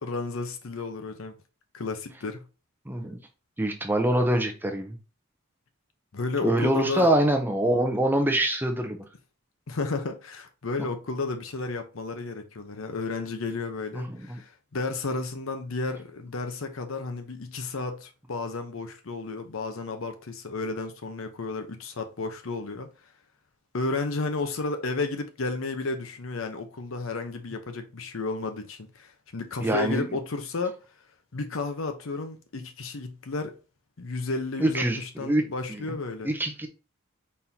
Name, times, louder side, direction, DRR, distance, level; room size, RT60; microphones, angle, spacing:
voice 1, 0.0-1.3 1.7-2.4 6.1-7.1 9.7-22.9 23.7-30.7 31.3-33.5 34.0-36.3, left 3 dB, 70° left, 0.7 m, -32 dB
voice 2, 2.9-3.2 3.6-5.0 6.4-9.0 14.0-14.2 29.6-30.1 34.6-35.4 35.7-36.0 36.2-36.7, right 1 dB, 10° right, 0.5 m, -25 dB
4.3 x 3.6 x 2.7 m
head